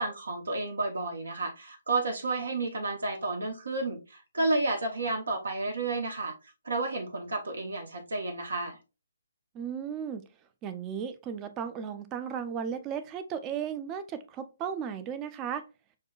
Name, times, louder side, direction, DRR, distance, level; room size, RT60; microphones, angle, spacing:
voice 1, 0.0-6.3 6.6-8.8, right 2 dB, 75° right, 0.8 m, -31 dB
voice 2, 9.5-10.2 10.6-15.7, right 7 dB, 20° right, 0.4 m, -35 dB
6.4 x 2.2 x 2.3 m
figure-of-eight pair, 140°, 0 cm